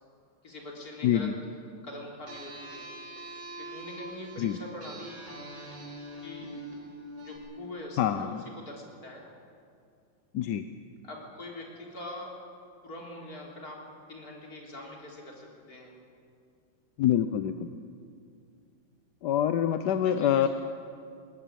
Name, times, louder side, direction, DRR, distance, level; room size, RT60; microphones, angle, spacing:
voice 1, 0.4-1.3 1.8-2.9 3.6-5.3 6.2-6.5 7.2-9.2 11.0-12.4 12.8-13.8 14.1-15.9 20.0-20.5, left 1 dB, 45° left, -1 dB, 4.1 m, -43 dB
voice 2, 1.0-1.3 4.4-4.6 8.0-8.4 10.3-10.6 17.0-17.7 19.2-20.5, left 10 dB, 65° left, 9 dB, 1.2 m, -25 dB
sound 1, 2.3-7.4, right 1 dB, 90° right, 6.1 m, -43 dB
20.5 x 19.0 x 8.9 m, 2.4 s
omnidirectional pair, 2.1 m